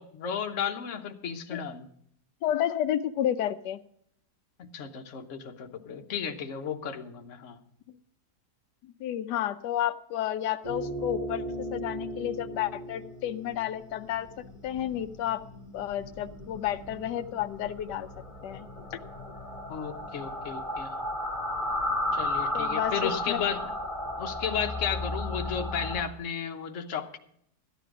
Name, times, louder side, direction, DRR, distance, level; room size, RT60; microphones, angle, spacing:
voice 1, 0.0-1.9 4.6-7.6 19.7-21.0 22.1-23.6 24.2-27.2, left 7 dB, 55° left, 5 dB, 1.3 m, -34 dB
voice 2, 2.4-3.8 9.0-11.4 11.7-14.3 14.6-15.4 15.7-18.1 18.4-19.0 22.5-23.4, left 11 dB, 90° left, 10 dB, 1.2 m, -31 dB
sound 1, 10.6-26.0, left 1 dB, 20° left, 1.9 m, -35 dB
13.5 x 9.9 x 4.9 m, 0.69 s
omnidirectional pair, 1.7 m